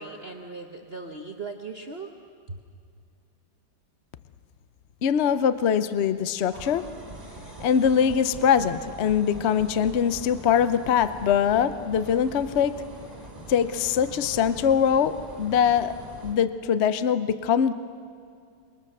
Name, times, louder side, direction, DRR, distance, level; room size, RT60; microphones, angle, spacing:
voice 1, 0.0-2.2 2.5-2.6, right 3 dB, 40° right, 3 dB, 1.1 m, -38 dB
voice 2, 5.0-6.8 7.6-12.8 13.5-15.9 16.2-17.7, left 8 dB, 70° left, 13 dB, 0.6 m, -22 dB
sound 1, 6.5-16.4, right 1 dB, 20° right, 2.7 m, -43 dB
28.0 x 23.0 x 6.7 m, 2.4 s
omnidirectional pair, 2.1 m